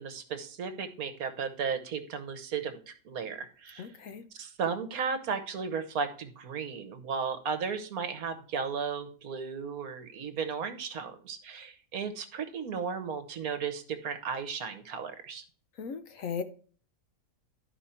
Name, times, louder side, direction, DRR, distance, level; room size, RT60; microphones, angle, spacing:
voice 1, 0.0-3.9 4.3-15.4, right 6 dB, 65° right, 1.4 m, -35 dB
voice 2, 3.8-4.2 15.8-16.4, left 6 dB, 60° left, 1.0 m, -37 dB
11.5 x 5.1 x 4.3 m
omnidirectional pair, 1.7 m